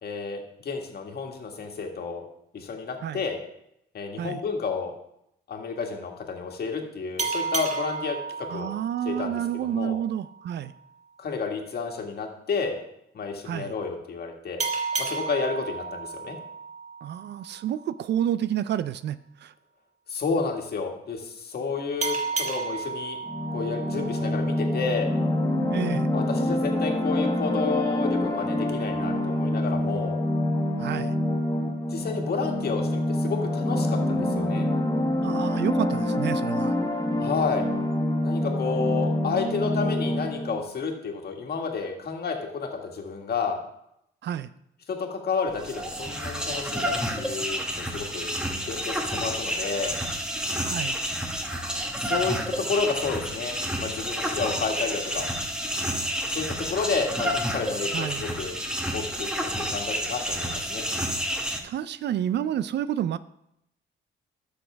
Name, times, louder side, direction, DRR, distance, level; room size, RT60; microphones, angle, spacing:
voice 1, 0.0-2.3 2.5-3.4 3.9-4.9 5.5-8.7 9.1-10.0 11.2-12.8 13.1-14.6 15.0-16.4 20.1-23.2 23.5-25.1 26.1-30.2 31.9-34.7 37.2-37.7 38.2-43.6 44.9-48.3 48.7-50.0 51.9-52.4 52.7-55.3 56.3-58.6 58.9-60.9, left 5 dB, 55° left, 2 dB, 1.7 m, -31 dB
sound 1, 7.2-10.4 14.6-17.8 22.0-25.0, right 4 dB, 35° right, 1.3 m, -33 dB
voice 2, 8.5-10.7 13.4-13.7 17.0-19.5 25.7-26.1 30.8-31.1 35.2-36.8 44.2-44.5 50.6-51.0 57.9-58.2 61.6-63.2, right 10 dB, 60° right, 15 dB, 0.4 m, -29 dB
sound 2, 23.2-40.6, left 1 dB, 20° left, 1.4 m, -26 dB
sound 3, 45.5-61.6, equal, 5° right, 1.1 m, -30 dB
12.5 x 6.4 x 3.4 m, 0.78 s
cardioid pair, 90°, 20 cm